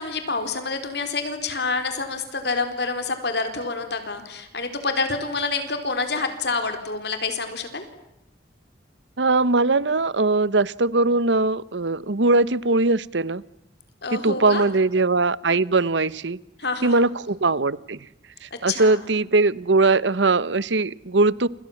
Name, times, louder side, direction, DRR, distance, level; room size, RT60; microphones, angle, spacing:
voice 1, 0.0-7.8 14.0-14.7 16.6-17.1 18.5-19.0, left 4 dB, 60° left, 8 dB, 4.2 m, -27 dB
voice 2, 9.2-13.4 14.1-16.4 16.8-18.0 18.4-21.5, right 3 dB, 80° right, 19 dB, 1.0 m, -20 dB
29.0 x 27.5 x 7.3 m, 0.85 s
head